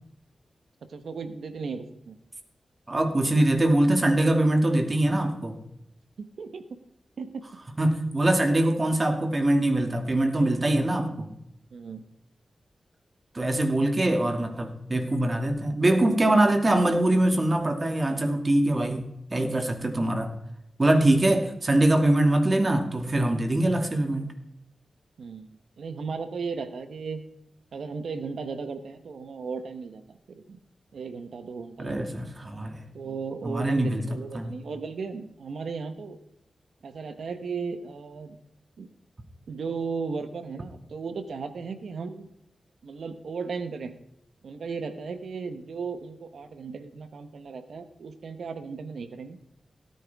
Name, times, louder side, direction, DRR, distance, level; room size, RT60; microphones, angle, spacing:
voice 1, 0.9-2.2 6.2-6.8 7.2-7.5 11.7-12.0 17.3-17.4 25.2-27.2 27.7-30.6 30.9-32.0 32.9-36.2 36.8-38.4 38.8-38.9 39.5-42.3 42.8-44.0 44.4-49.4, right 5 dB, 85° right, 9 dB, 1.1 m, -36 dB
voice 2, 2.9-5.6 7.8-11.3 13.3-20.3 20.8-24.3 31.8-32.9 33.4-34.0 34.3-34.5, right 1 dB, 40° right, 5 dB, 2.4 m, -23 dB
17.0 x 9.9 x 3.6 m, 0.81 s
cardioid pair, 55°, 0 cm